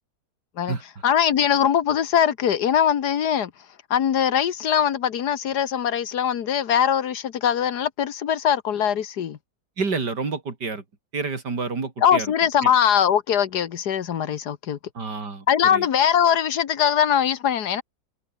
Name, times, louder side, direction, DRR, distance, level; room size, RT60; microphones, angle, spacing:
voice 1, 1.0-3.5 3.9-9.4 12.0-14.8 15.5-17.8, left 9 dB, 75° left, 1.7 m, -21 dB
voice 2, 9.8-10.8 11.1-12.3 12.6-12.7 15.0-15.5 15.7-15.9, right 4 dB, 90° right, 3.9 m, -28 dB
omnidirectional pair, 1.8 m